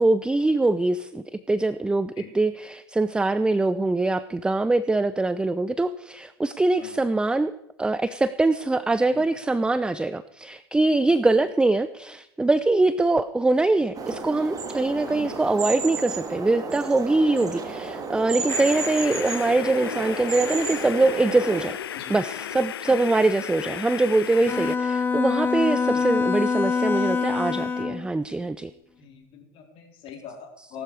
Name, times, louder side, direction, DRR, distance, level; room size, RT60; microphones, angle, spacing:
voice 1, 0.0-7.5 7.8-21.8 22.1-28.7, right 2 dB, 5° right, 15 dB, 0.5 m, -23 dB
sound 1, 13.9-21.7, right 4 dB, 30° right, 2.5 m, -32 dB
sound 2, 18.5-24.8, left 10 dB, 70° left, 0.5 m, -34 dB
Bowed string instrument, 24.5-28.1, left 5 dB, 15° left, 1.7 m, -25 dB
voice 2, 29.0-30.8, left 7 dB, 45° left, 2 dB, 4.0 m, -42 dB
18.5 x 12.0 x 4.8 m, 0.83 s
figure-of-eight pair, 80°, 13 cm